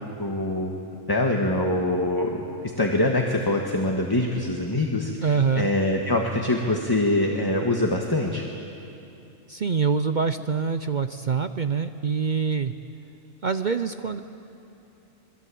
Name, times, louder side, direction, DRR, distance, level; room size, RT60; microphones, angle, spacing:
voice 1, 0.2-0.8 1.1-8.4, left 1 dB, 15° left, 1 dB, 1.5 m, -24 dB
voice 2, 5.2-5.7 9.5-12.7 13.4-14.2, right 5 dB, 50° right, 9 dB, 0.6 m, -25 dB
26.5 x 20.5 x 8.5 m, 2.8 s
omnidirectional pair, 1.5 m